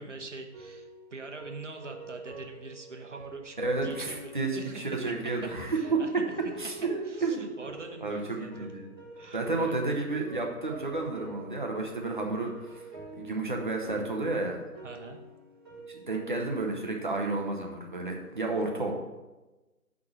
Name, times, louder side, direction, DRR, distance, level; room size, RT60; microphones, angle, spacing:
voice 1, 0.0-3.6 3.8-4.8 5.4-6.3 7.1-8.7 9.2-9.7 14.8-15.2, right 3 dB, 50° right, 3 dB, 1.2 m, -44 dB
sound 1, 0.5-16.6, right 2 dB, 15° right, 1.7 m, -47 dB
voice 2, 3.6-6.0 6.6-7.5 8.0-8.9 9.3-12.8 13.1-14.6 15.9-18.9, right 3 dB, 35° right, 1 dB, 1.0 m, -31 dB
10.0 x 3.7 x 6.0 m, 1.1 s
figure-of-eight pair, 155°, 45 cm